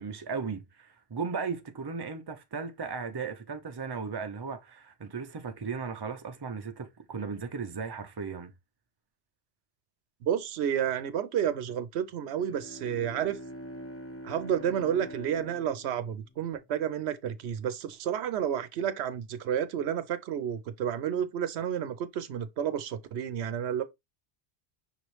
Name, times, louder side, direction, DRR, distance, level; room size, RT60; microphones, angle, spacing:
voice 1, 0.0-8.5, right 5 dB, 30° right, 0.5 m, -36 dB
voice 2, 10.2-13.4 14.2-23.8, right 9 dB, 90° right, 0.9 m, -31 dB
Bowed string instrument, 12.2-17.1, equal, 15° left, 0.6 m, -45 dB
5.7 x 3.0 x 3.1 m
omnidirectional pair, 1.1 m